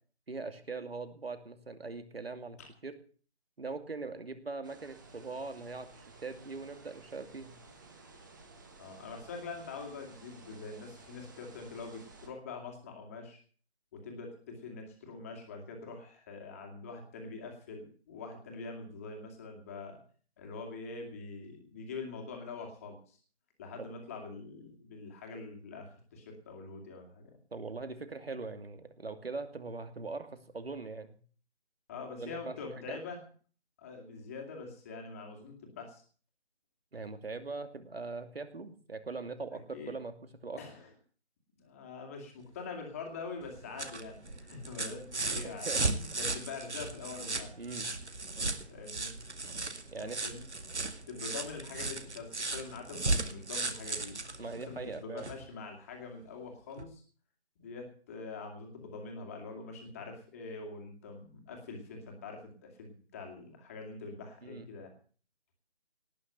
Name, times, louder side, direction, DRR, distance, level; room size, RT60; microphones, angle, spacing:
voice 1, 0.3-2.9 3.6-7.6 23.8-23.9 27.5-31.2 32.2-33.0 36.9-40.6 45.4-45.9 47.6-47.9 49.9-50.2 54.4-55.3 64.4-64.7, right 3 dB, 60° right, 10 dB, 2.5 m, -41 dB
sound 1, 4.6-12.3, right 3 dB, 15° right, 1.6 m, -55 dB
voice 2, 8.8-13.4 13.9-20.0 20.4-23.2 23.6-27.4 31.9-33.2 33.8-36.0 39.7-39.9 40.6-40.9 41.6-47.5 48.7-49.1 50.0-50.4 51.1-54.2 54.5-57.0 57.6-64.9, left 4 dB, 15° left, 2 dB, 2.3 m, -44 dB
sound 2, 43.4-55.4 56.8-56.9, right 3 dB, 80° right, 2.2 m, -36 dB
18.5 x 6.9 x 8.9 m, 0.42 s
figure-of-eight pair, 165°, 33 cm